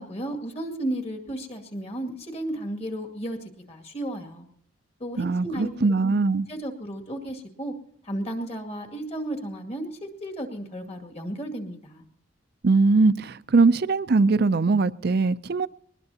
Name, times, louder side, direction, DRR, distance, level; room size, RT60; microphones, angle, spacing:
voice 1, 0.0-4.5 5.0-5.7 6.0-6.1 6.5-7.7 8.0-12.0, right 1 dB, 35° left, 2.3 m, -33 dB
voice 2, 5.2-6.5 12.6-15.7, right 3 dB, 55° right, 0.5 m, -21 dB
21.5 x 20.0 x 2.9 m
head